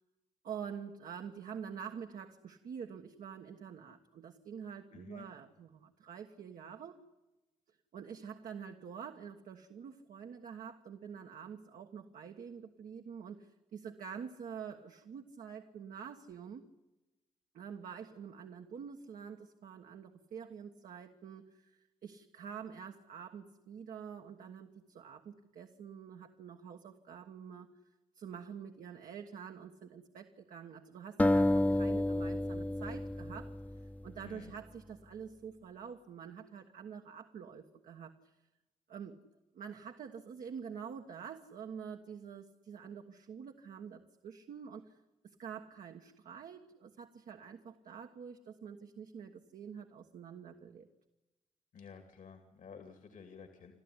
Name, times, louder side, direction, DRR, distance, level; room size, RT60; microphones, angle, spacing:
voice 1, 0.4-7.0 7.9-16.6 17.5-27.7 28.1-33.6 34.0-38.3 38.9-39.2 39.5-45.0 45.2-50.9, right 7 dB, 80° right, 3 dB, 1.4 m, -47 dB
voice 2, 4.9-5.3 34.2-34.5 51.7-53.7, left 6 dB, 75° left, 6 dB, 2.5 m, -52 dB
sound 1, 31.2-34.4, left 1 dB, 10° left, 0.7 m, -31 dB
29.5 x 13.0 x 9.8 m, 1.0 s
cardioid pair, 60°, 14 cm